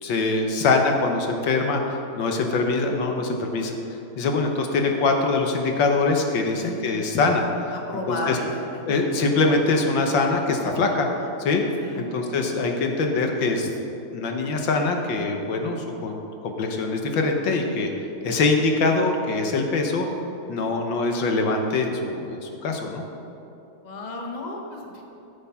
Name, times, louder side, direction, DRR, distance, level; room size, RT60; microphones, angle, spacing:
voice 1, 0.0-3.8 4.2-7.4 8.1-8.4 8.9-11.1 11.4-11.6 12.0-13.7 14.1-17.9 18.2-20.1 20.5-23.0, left 3 dB, 70° left, 3 dB, 1.7 m, -23 dB
voice 2, 6.4-6.7 7.7-8.6 8.9-9.0 9.9-10.1 11.8-12.6 23.8-25.0, left 2 dB, 25° left, 1 dB, 1.0 m, -34 dB
13.5 x 7.2 x 5.7 m, 2.8 s
omnidirectional pair, 2.2 m